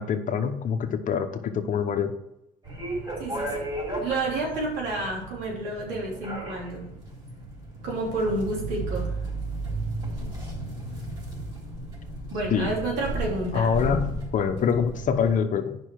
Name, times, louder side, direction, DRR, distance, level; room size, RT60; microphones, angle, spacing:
voice 1, 0.0-2.1 12.5-12.7 13.5-15.8, left 7 dB, 50° left, 7 dB, 1.0 m, -25 dB
sound 1, 2.6-15.3, right 1 dB, 25° right, 3.7 m, -34 dB
voice 2, 3.2-3.6 4.0-6.9 7.8-9.1 12.3-13.7, right 2 dB, 85° right, -2 dB, 3.2 m, -30 dB
9.7 x 5.6 x 4.8 m, 0.85 s
cardioid pair, 110°, 17 cm